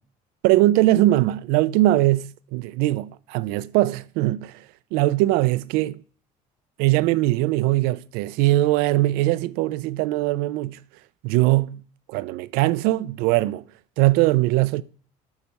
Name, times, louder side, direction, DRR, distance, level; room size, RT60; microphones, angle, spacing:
voice 1, 0.4-4.6 4.9-6.0 6.8-10.8 11.2-11.8 12.1-13.6 14.0-14.8, right 17 dB, 85° right, 0.4 m, -21 dB
7.2 x 3.2 x 5.2 m
cardioid pair, 150°, 15 cm